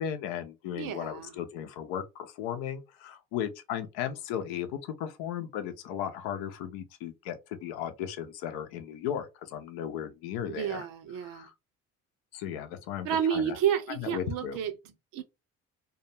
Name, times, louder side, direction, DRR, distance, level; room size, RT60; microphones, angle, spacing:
voice 1, 0.0-10.9 11.2-11.5 12.3-13.6 14.0-14.6, left 9 dB, 70° left, 0.6 m, -36 dB
voice 2, 0.7-1.4 10.5-11.5 13.0-14.7 15.1-15.2, right 9 dB, 60° right, 0.7 m, -30 dB
2.4 x 2.2 x 2.8 m
hypercardioid pair, 50°, 38 cm